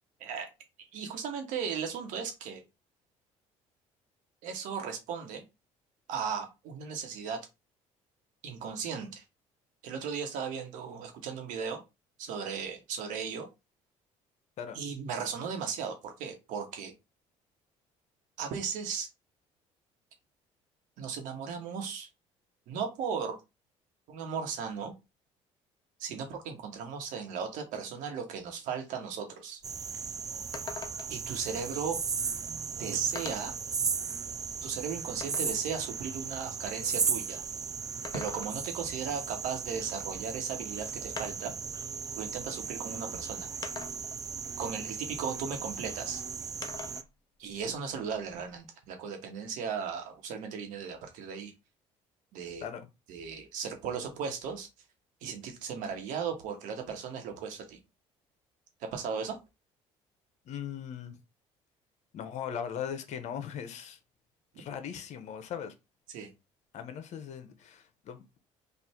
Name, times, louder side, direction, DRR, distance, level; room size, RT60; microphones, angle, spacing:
voice 1, 0.9-2.6 4.4-5.4 6.1-7.4 8.4-9.2 9.8-11.8 12.2-13.5 14.7-16.9 18.4-19.1 21.0-22.1 22.7-23.4 24.1-24.9 26.0-29.6 31.1-32.0 32.8-33.5 34.6-37.4 38.1-41.5 42.2-43.5 44.6-46.2 47.4-51.5 52.3-52.6 53.1-54.7 55.2-57.8 58.8-59.4 66.1-66.3, right 6 dB, 75° right, 1.3 m, -36 dB
sound 1, 29.6-29.7 30.0-30.1 30.5-31.3 32.3-32.4 33.2-33.6 34.2-35.6 37.8-38.8 40.3-40.4 41.2-41.6 42.6-42.7 43.6-44.2 46.6-47.1 47.5-48.6, left 5 dB, 30° left, 0.7 m, -43 dB
sound 2, 29.6-47.0, right 6 dB, 25° right, 0.4 m, -36 dB
voice 2, 60.4-61.2 62.1-64.0 64.6-65.7 66.7-68.4, left 8 dB, 60° left, 0.8 m, -39 dB
3.4 x 2.5 x 4.3 m
supercardioid pair, 90°, 13 cm